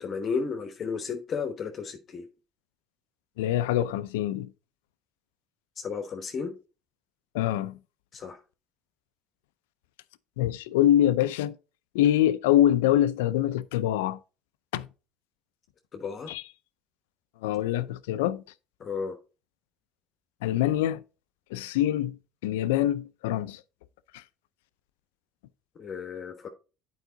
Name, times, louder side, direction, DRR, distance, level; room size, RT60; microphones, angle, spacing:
voice 1, 0.0-2.3 5.8-6.5 8.1-8.4 15.9-16.3 18.8-19.2 25.8-26.5, left 5 dB, 45° left, 1.0 m, -33 dB
voice 2, 3.4-4.5 7.3-7.8 10.4-11.5 11.9-14.2 14.7-14.9 16.3-16.4 17.4-18.4 20.4-21.0 21.5-22.2 22.4-23.6 24.1-24.2, left 12 dB, 90° left, 0.4 m, -24 dB
8.1 x 4.7 x 3.8 m
supercardioid pair, 80°, 0 cm